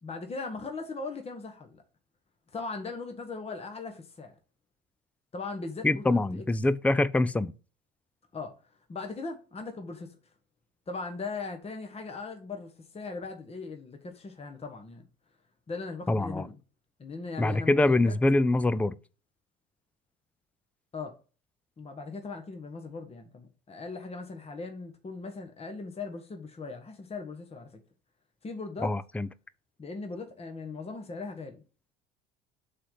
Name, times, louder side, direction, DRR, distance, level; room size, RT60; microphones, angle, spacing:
voice 1, 0.0-1.8 2.5-4.3 5.3-6.4 8.3-8.5 8.9-10.2 10.9-15.1 15.7-16.6 17.0-18.2 20.9-21.1 21.8-27.7 28.4-28.9 29.8-31.6, left 4 dB, 30° left, 1.4 m, -39 dB
voice 2, 5.8-7.5 16.1-16.5 17.4-18.9 28.8-29.3, left 2 dB, 5° left, 0.4 m, -24 dB
6.4 x 3.9 x 5.7 m
hypercardioid pair, 70°, 21 cm